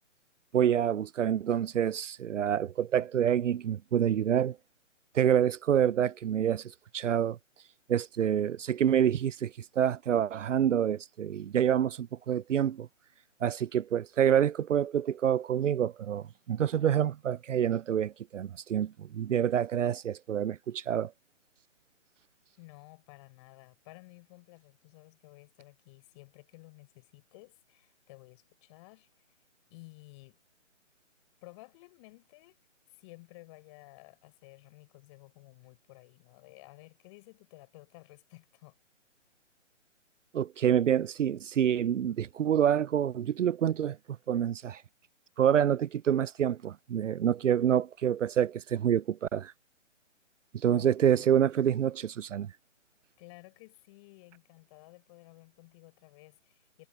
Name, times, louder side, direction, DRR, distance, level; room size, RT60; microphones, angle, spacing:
voice 1, 0.5-4.6 5.1-7.4 7.9-12.9 13.4-21.1 40.3-44.0 44.3-44.8 45.4-49.5 50.5-52.5, right 9 dB, 75° right, 0.5 m, -27 dB
voice 2, 22.6-29.4 29.7-30.4 31.4-32.6 32.9-38.8 50.6-51.3 53.2-56.9, left 24 dB, 25° left, 6.4 m, -54 dB
figure-of-eight pair, 150°, 38 cm